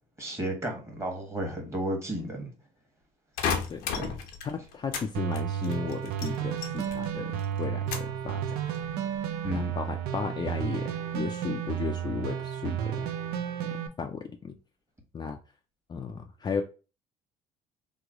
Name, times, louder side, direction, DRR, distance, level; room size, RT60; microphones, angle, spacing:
voice 1, 0.2-2.5 3.9-4.1 9.4-9.7, right 1 dB, 15° right, 2 dB, 1.3 m, -33 dB
sound 1, 3.4-5.1 5.3-7.1 7.4-8.2 8.7-9.2, left 6 dB, 90° left, 0.7 m, -33 dB
voice 2, 4.4-8.6 9.5-13.1 13.6-14.5 15.1-15.4 15.9-16.6, left 6 dB, 30° left, 5 dB, 0.4 m, -35 dB
sound 2, 5.1-13.9, right 9 dB, 85° right, 0.4 m, -32 dB
3.1 x 2.3 x 3.6 m, 0.33 s
cardioid pair, 105°, 15 cm